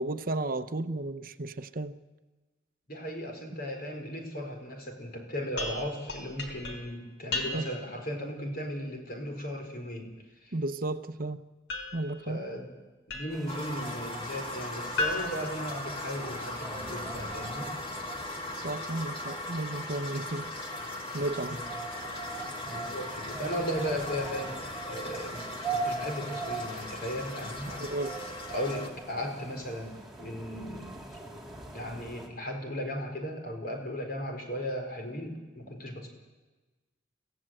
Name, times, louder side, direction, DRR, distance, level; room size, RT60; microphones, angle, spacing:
voice 1, 0.0-1.9 7.5-7.7 10.5-11.4 11.9-12.4 18.6-20.5 20.8-20.9 21.1-21.6 27.8-28.1, right 2 dB, 50° right, 10 dB, 0.8 m, -33 dB
voice 2, 2.9-10.1 10.4-10.5 12.3-12.7 13.1-17.7 21.4-21.6 22.7-24.6 24.9-27.8 28.5-31.1 31.7-36.1, equal, 55° left, 3 dB, 4.5 m, -36 dB
sound 1, 5.6-8.0 11.7-13.6 15.0-16.4, left 2 dB, 70° left, 3.6 m, -37 dB
sound 2, 13.3-32.3, right 3 dB, ahead, 3.3 m, -42 dB
sound 3, 13.5-28.9, left 2 dB, 30° left, 2.3 m, -39 dB
26.0 x 16.0 x 7.8 m, 1.2 s
head